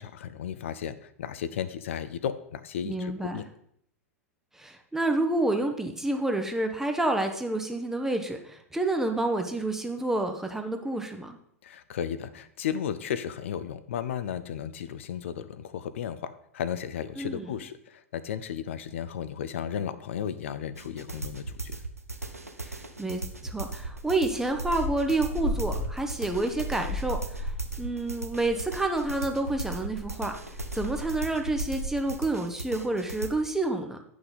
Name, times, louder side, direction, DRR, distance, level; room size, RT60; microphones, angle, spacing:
voice 1, 0.0-3.4 11.6-21.8, left 8 dB, 60° left, 12 dB, 0.5 m, -34 dB
voice 2, 2.8-3.4 4.5-11.4 17.2-17.5 22.6-30.3 30.7-34.0, right 2 dB, 5° right, 5 dB, 0.9 m, -29 dB
sound 1, 20.8-33.3, right 3 dB, 85° right, 0.8 m, -38 dB
sound 2, 23.7-32.2, left 1 dB, 80° left, 2.1 m, -36 dB
9.0 x 6.1 x 4.0 m, 0.69 s
figure-of-eight pair, 90°, 8 cm